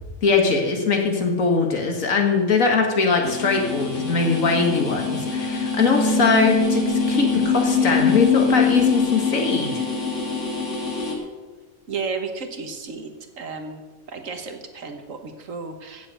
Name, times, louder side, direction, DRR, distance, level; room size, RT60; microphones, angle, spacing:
voice 1, 0.2-9.8, left 4 dB, 75° left, 2 dB, 2.1 m, -21 dB
sound 1, 3.2-11.1, left 4 dB, 60° left, 2.4 m, -23 dB
voice 2, 11.9-13.8 14.1-16.1, right 4 dB, 70° right, 6 dB, 1.6 m, -33 dB
15.5 x 7.3 x 6.8 m, 1.3 s
omnidirectional pair, 1.4 m